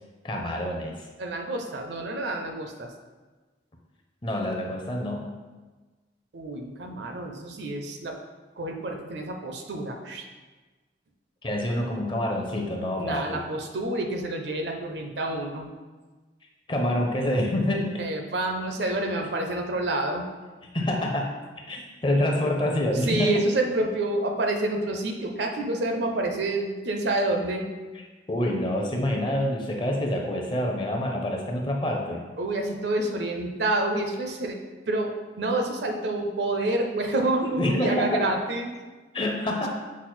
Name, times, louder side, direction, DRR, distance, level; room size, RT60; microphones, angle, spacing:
voice 1, 0.2-0.9 4.2-5.3 11.4-13.4 16.7-17.9 20.7-21.4 21.7-23.4 28.3-32.2 37.5-38.2 39.1-39.7, left 1 dB, 25° left, 0 dB, 0.5 m, -26 dB
voice 2, 1.2-2.9 6.3-8.2 8.6-10.2 13.0-15.7 18.0-20.2 22.9-27.7 32.4-34.6 34.9-38.7, right 2 dB, 70° right, 3 dB, 0.5 m, -28 dB
6.1 x 2.0 x 4.3 m, 1.3 s
head